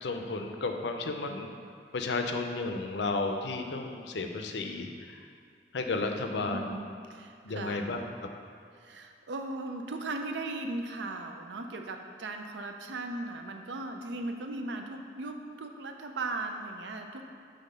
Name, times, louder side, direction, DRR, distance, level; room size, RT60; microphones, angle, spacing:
voice 1, 0.0-1.5 1.9-5.2 5.7-6.8 7.5-8.3, left 3 dB, 75° left, 4 dB, 0.5 m, -33 dB
voice 2, 6.4-6.8 7.1-7.9 8.8-17.2, right 2 dB, 85° right, 5 dB, 0.5 m, -37 dB
5.7 x 3.5 x 5.2 m, 2.3 s
head